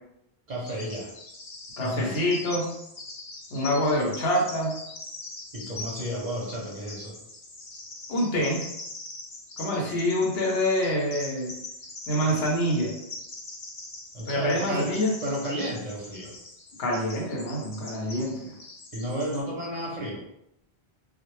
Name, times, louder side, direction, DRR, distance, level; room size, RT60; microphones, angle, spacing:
voice 1, 0.5-1.1 1.8-2.2 5.5-7.2 14.1-16.3 17.7-18.0 18.9-20.2, equal, 50° right, -4 dB, 0.6 m, -32 dB
Bird vocalization bird call bird song, 0.6-19.4, left 2 dB, 55° left, 0.3 m, -42 dB
voice 2, 1.8-2.7 3.5-4.8 8.1-8.7 9.6-11.5 12.1-12.9 14.3-15.1 16.8-18.5, equal, 75° left, -1 dB, 0.9 m, -26 dB
2.0 x 2.0 x 3.0 m, 0.80 s
omnidirectional pair, 1.1 m